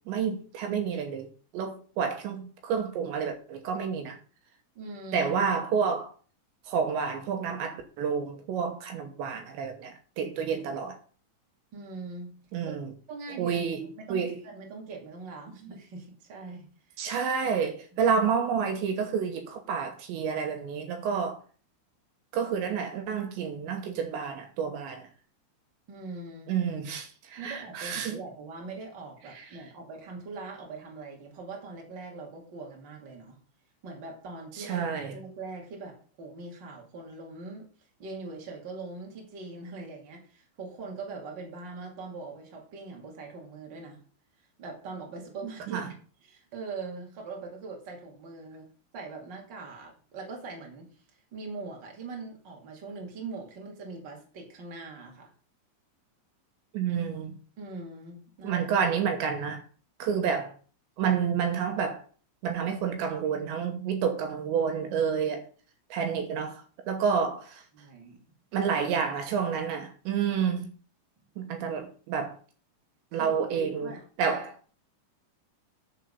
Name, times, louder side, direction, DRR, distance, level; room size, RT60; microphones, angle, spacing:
voice 1, 0.1-4.2 5.1-6.1 6.7-11.0 12.5-12.9 13.4-14.4 17.0-21.4 22.3-25.1 26.5-28.2 29.3-29.5 34.5-35.2 45.7-45.9 56.7-57.3 58.4-59.6 60.0-60.5 61.0-62.0 62.4-65.4 65.9-67.6 68.5-70.7 71.4-72.4 73.1-73.9 74.2-74.6, right 6 dB, 75° right, 3.2 m, -29 dB
voice 2, 4.7-5.3 11.7-12.4 12.6-12.8 13.1-13.6 14.0-16.7 17.4-17.6 17.9-18.0 25.9-26.5 27.4-33.4 33.8-37.7 38.0-44.0 44.6-45.8 46.2-48.7 48.9-50.9 51.3-55.3 57.6-58.7 67.7-68.2 73.1-74.0, right 3 dB, 30° right, 2.3 m, -41 dB
11.0 x 4.5 x 6.8 m
omnidirectional pair, 5.5 m